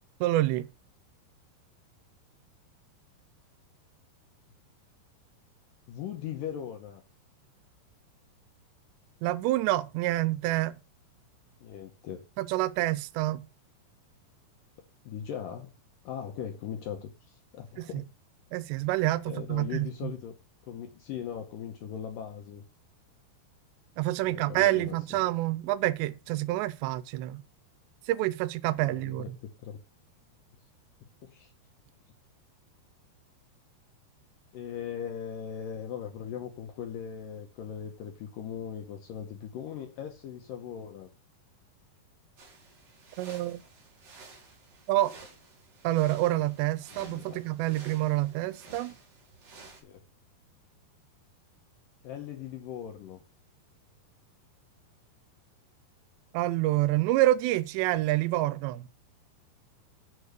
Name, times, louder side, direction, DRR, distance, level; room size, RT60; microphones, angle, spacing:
voice 1, 0.2-0.7 9.2-10.8 12.4-13.4 17.8-18.0 18.5-20.1 24.0-27.4 28.1-29.4 43.2-43.6 44.9-45.1 45.8-49.0 56.3-58.8, right 16 dB, 90° right, 2.8 m, -27 dB
voice 2, 5.9-7.0 11.6-12.2 15.0-15.7 16.0-18.1 19.3-20.3 20.6-22.6 24.2-25.0 28.8-29.8 31.3-31.5 34.5-41.1 46.9-47.4 49.8-50.0 52.0-53.2, left 8 dB, 75° left, 2.1 m, -39 dB
sound 1, 42.4-49.8, right 3 dB, 45° right, 2.9 m, -53 dB
8.4 x 4.7 x 6.6 m
omnidirectional pair, 4.9 m